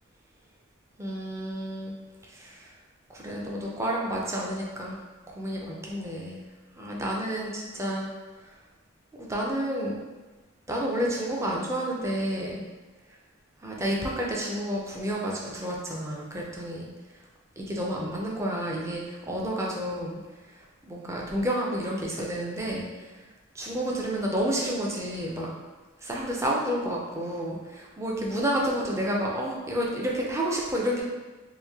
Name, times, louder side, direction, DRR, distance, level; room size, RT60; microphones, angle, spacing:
voice 1, 1.0-1.9 2.2-2.7 3.1-5.0 5.3-6.4 6.8-8.1 8.4-8.5 9.1-9.9 10.7-12.6 13.6-16.9 17.6-20.2 20.5-23.2 23.5-25.5 26.0-31.0, equal, 15° right, -3 dB, 0.4 m, -30 dB
3.1 x 2.5 x 3.4 m, 1.3 s
head